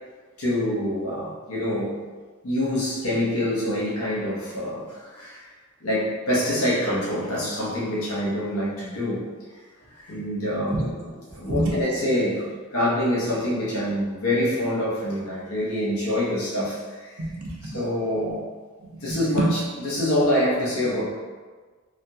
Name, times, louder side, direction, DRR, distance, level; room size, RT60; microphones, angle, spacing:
voice 1, 0.4-2.0 2.4-5.4 5.8-9.2 10.0-10.8 11.3-17.2 17.7-18.4 19.0-19.6 19.8-21.1, left 1 dB, 80° left, -7 dB, 1.0 m, -25 dB
voice 2, 10.7-11.9 17.2-17.8 18.2-18.3 18.8-19.5, right 1 dB, 90° right, -3 dB, 0.8 m, -28 dB
3.5 x 2.3 x 2.7 m, 1.4 s
head